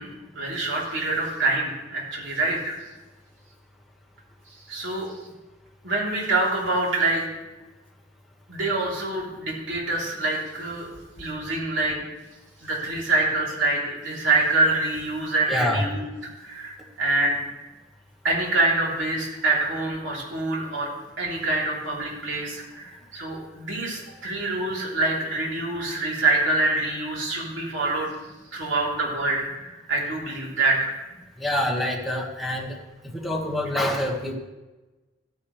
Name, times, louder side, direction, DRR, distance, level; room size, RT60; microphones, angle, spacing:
voice 1, 0.0-2.8 4.7-5.1 5.8-7.2 8.5-10.9 11.2-12.0 12.6-16.0 16.4-17.4 18.2-20.9 21.2-28.1 28.5-30.9, right 2 dB, 80° right, -3 dB, 3.6 m, -25 dB
voice 2, 15.5-15.8 31.4-32.8 33.1-34.4, left 1 dB, ahead, 0 dB, 1.7 m, -26 dB
15.0 x 9.7 x 3.3 m, 1.1 s
head